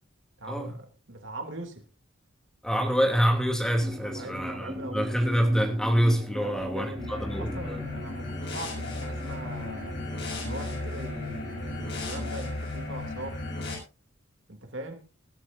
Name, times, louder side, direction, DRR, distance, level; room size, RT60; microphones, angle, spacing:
voice 1, 0.4-1.8 4.0-5.4 6.3-10.0 10.4-13.4 14.5-15.1, right 1 dB, 65° right, 2.8 m, -41 dB
voice 2, 2.6-7.8, equal, 5° left, 2.8 m, -26 dB
sound 1, 3.8-12.3, equal, 15° right, 4.3 m, -40 dB
sound 2, 6.9-13.7, left 2 dB, 55° left, 7.3 m, -35 dB
21.0 x 13.0 x 2.7 m
head